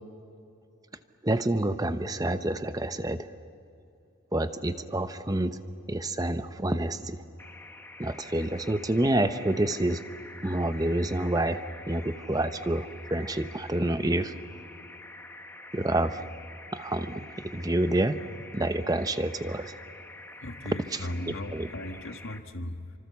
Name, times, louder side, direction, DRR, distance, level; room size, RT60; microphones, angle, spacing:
voice 1, 1.2-3.3 4.3-5.6 5.9-7.2 8.0-10.0 10.4-11.6 11.9-14.3 15.7-16.2 16.7-18.2 18.5-19.7 20.9-21.0 21.5-21.7, right 1 dB, 20° right, 10 dB, 0.9 m, -28 dB
sound 1, 7.4-22.4, left 2 dB, 10° left, 1.1 m, -47 dB
voice 2, 20.4-22.9, left 1 dB, 75° left, 6 dB, 1.7 m, -37 dB
29.0 x 25.5 x 7.1 m, 2.7 s
head